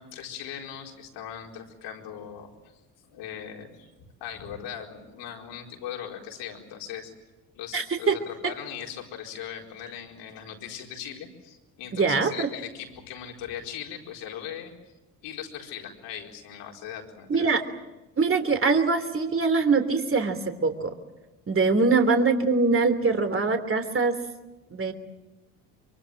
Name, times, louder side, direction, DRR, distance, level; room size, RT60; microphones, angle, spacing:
voice 1, 0.0-2.5 3.0-3.9 4.2-7.1 7.5-14.7 15.2-17.5, left 9 dB, 75° left, 1 dB, 4.6 m, -39 dB
voice 2, 7.7-8.1 11.9-12.5 17.3-17.6 18.2-20.9 21.5-24.2 24.7-24.9, right 4 dB, 30° right, 8 dB, 3.2 m, -23 dB
24.0 x 24.0 x 7.7 m, 1.1 s
hypercardioid pair, 60°, 43 cm